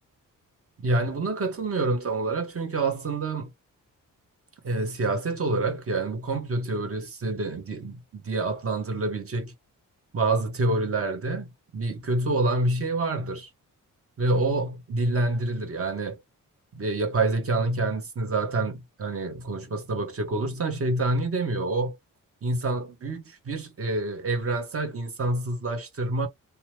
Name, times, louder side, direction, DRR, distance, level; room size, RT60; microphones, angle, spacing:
voice 1, 0.8-3.5 4.6-9.5 10.1-13.5 14.2-16.2 16.7-21.9 22.4-26.3, right 2 dB, 45° right, 1.1 m, -27 dB
2.8 x 2.2 x 3.1 m
wide cardioid pair, 145°, 33 cm